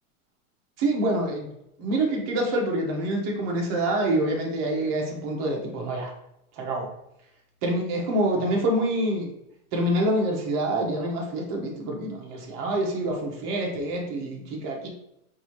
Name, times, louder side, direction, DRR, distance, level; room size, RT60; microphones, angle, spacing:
voice 1, 0.8-1.5 1.8-6.1 6.6-6.9 7.6-9.3 9.7-14.9, right 1 dB, 35° right, 0 dB, 1.2 m, -26 dB
5.4 x 2.8 x 3.0 m, 0.81 s
supercardioid pair, 145°, 44 cm